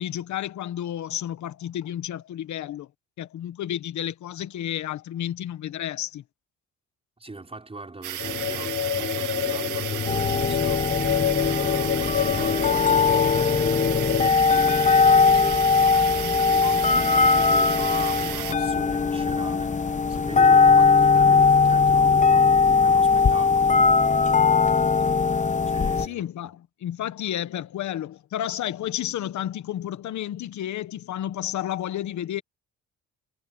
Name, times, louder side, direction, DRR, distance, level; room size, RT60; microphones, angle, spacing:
voice 1, 0.0-2.9 3.2-6.2 26.0-32.4, left 11 dB, 70° left, 1.3 m, -31 dB
voice 2, 7.2-13.3 14.4-23.7 24.4-25.0 25.7-26.2, right 3 dB, 20° right, 5.1 m, -41 dB
sound 1, 8.0-18.5, right 13 dB, 85° right, 2.4 m, -33 dB
sound 2, 8.2-14.3, left 8 dB, 40° left, 1.3 m, -27 dB
sound 3, 10.1-26.1, left 5 dB, 25° left, 0.9 m, -20 dB
cardioid pair, 90°, 30 cm